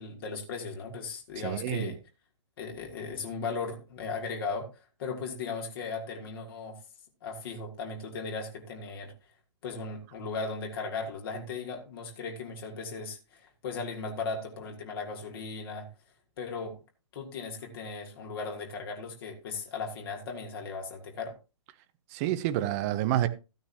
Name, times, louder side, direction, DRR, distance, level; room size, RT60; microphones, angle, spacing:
voice 1, 0.0-2.0 2.6-6.8 7.2-9.1 9.6-15.9 16.4-16.8 17.1-21.3, left 4 dB, 50° left, 3.0 m, -37 dB
voice 2, 1.4-1.9 22.1-23.3, right 13 dB, 30° right, 1.0 m, -28 dB
14.5 x 9.3 x 2.9 m
figure-of-eight pair, 130°, 16 cm